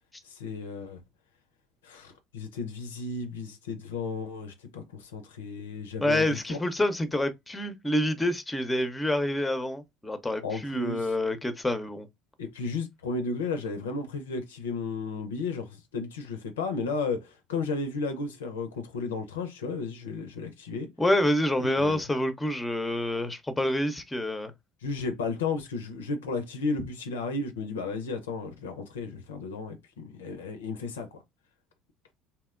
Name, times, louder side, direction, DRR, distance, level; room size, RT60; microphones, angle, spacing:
voice 1, 0.2-1.0 1.8-6.6 10.4-11.1 12.4-20.9 21.6-22.0 24.8-31.2, left 4 dB, 85° left, 0.4 m, -34 dB
voice 2, 6.0-12.1 21.0-24.5, left 1 dB, 15° left, 0.5 m, -27 dB
2.7 x 2.1 x 2.3 m
hypercardioid pair, 70°, 0 cm